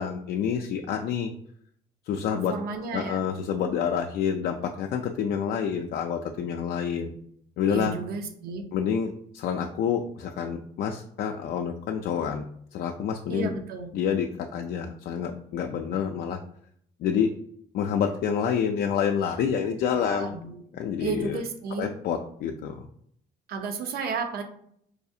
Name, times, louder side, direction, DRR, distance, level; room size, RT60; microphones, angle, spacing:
voice 1, 0.0-1.3 2.1-2.5 2.9-7.2 7.6-8.0 8.7-12.5 12.7-13.5 13.9-16.4 17.0-17.3 17.7-20.4 20.7-21.4 21.8-22.8, left 7 dB, 60° left, 4 dB, 0.4 m, -28 dB
voice 2, 2.3-3.3 7.7-8.7 13.3-13.9 19.9-20.6 21.0-21.9 23.5-24.4, right 4 dB, 65° right, 5 dB, 0.7 m, -33 dB
4.8 x 2.4 x 2.7 m, 0.66 s
cardioid pair, 110°, 17 cm